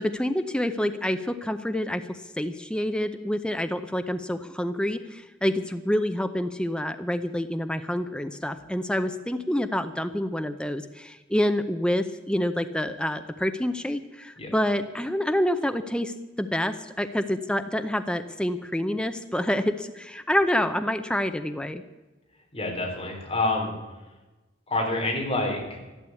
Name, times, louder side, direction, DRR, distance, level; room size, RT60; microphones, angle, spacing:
voice 1, 0.0-21.8, left 1 dB, 5° left, 9 dB, 0.6 m, -27 dB
voice 2, 22.5-23.7 24.7-25.8, left 2 dB, 30° left, 0 dB, 3.5 m, -27 dB
13.5 x 12.0 x 8.4 m, 1.1 s
head